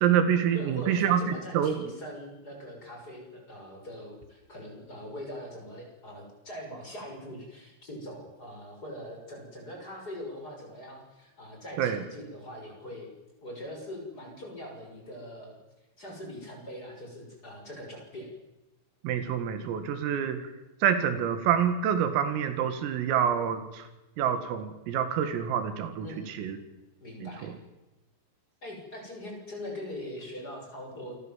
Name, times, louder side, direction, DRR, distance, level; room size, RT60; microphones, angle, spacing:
voice 1, 0.0-1.8 11.8-12.0 19.0-20.4 20.8-23.8 24.2-26.6 27.2-27.3, right 8 dB, 80° right, 9 dB, 4.6 m, -27 dB
voice 2, 0.5-13.1 13.4-15.6 16.0-18.3 26.0-26.3 27.0-27.5 28.6-31.2, left 1 dB, 20° left, 1 dB, 6.5 m, -42 dB
28.0 x 22.0 x 7.5 m, 1.0 s
omnidirectional pair, 5.9 m